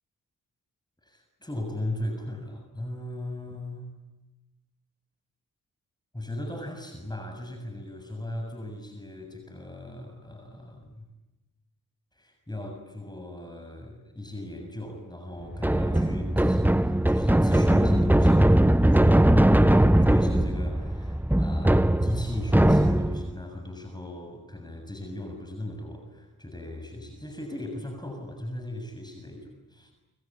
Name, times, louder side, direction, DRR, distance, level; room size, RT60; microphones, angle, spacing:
voice 1, 1.0-3.9 6.1-11.1 12.1-29.9, left 1 dB, 10° left, 4 dB, 7.0 m, -38 dB
sound 1, 15.5-23.3, right 1 dB, 5° right, 1.0 m, -20 dB
27.5 x 24.0 x 8.6 m, 1.0 s
supercardioid pair, 45°, 37 cm